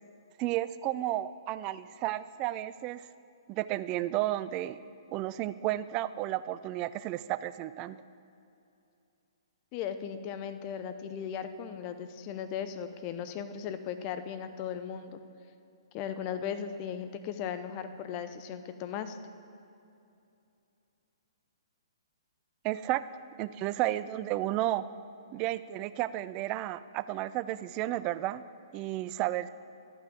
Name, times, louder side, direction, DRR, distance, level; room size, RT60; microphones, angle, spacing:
voice 1, 0.4-3.1 3.5-4.8 5.1-8.0 22.6-23.0 23.4-24.8 25.3-28.4 28.7-29.5, right 15 dB, 25° right, 15 dB, 0.3 m, -32 dB
voice 2, 9.7-15.2 15.9-19.2, left 8 dB, 30° left, 10 dB, 0.7 m, -37 dB
11.5 x 6.0 x 7.9 m, 2.7 s
figure-of-eight pair, 120°, 3 cm